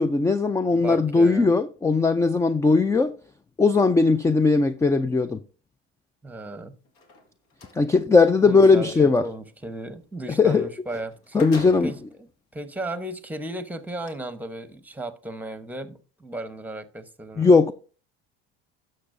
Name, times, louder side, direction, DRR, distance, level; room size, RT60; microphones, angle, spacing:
voice 1, 0.0-3.1 3.6-5.4 7.8-9.2 10.4-10.7 11.3-11.9 17.4-17.7, left 4 dB, 10° left, 0.4 m, -19 dB
voice 2, 0.7-1.5 6.2-6.7 8.5-11.4 11.8-12.0 12.5-17.6, right 1 dB, 5° right, 1.0 m, -35 dB
sound 1, 6.8-7.8 10.6-10.7 11.1-12.1 12.8-12.9 13.9-14.1, left 2 dB, 70° left, 1.9 m, -42 dB
11.5 x 6.5 x 2.6 m
supercardioid pair, 85°, 29 cm